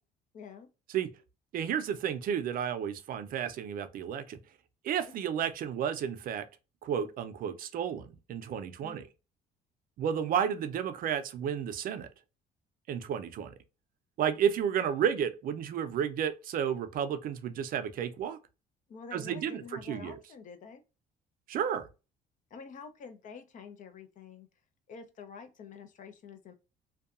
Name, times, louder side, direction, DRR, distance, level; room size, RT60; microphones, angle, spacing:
voice 1, 0.3-0.7 5.1-5.2 8.8-9.0 18.9-20.8 22.5-24.5 24.9-26.5, left 5 dB, 50° left, 0.6 m, -47 dB
voice 2, 1.5-4.4 4.8-6.5 6.8-9.0 10.0-12.1 12.9-13.5 14.2-18.4 19.1-20.2 21.5-21.9, right 8 dB, 60° right, 0.5 m, -32 dB
2.6 x 2.3 x 2.4 m
cardioid pair, 110°, 17 cm